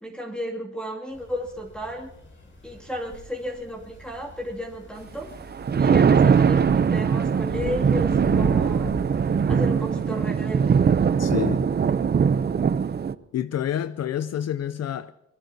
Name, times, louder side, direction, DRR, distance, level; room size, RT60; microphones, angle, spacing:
voice 1, 0.0-2.1 2.6-5.3 5.7-8.9 9.5-10.8, equal, 5° left, 2.3 m, -33 dB
sound 1, 1.1-9.4, left 3 dB, 40° left, 6.5 m, -40 dB
Thunder, 5.4-13.1, right 6 dB, 35° right, 0.6 m, -21 dB
voice 2, 11.2-11.7 13.3-15.1, left 10 dB, 60° left, 0.5 m, -28 dB
24.5 x 20.5 x 2.8 m
cardioid pair, 105°, 29 cm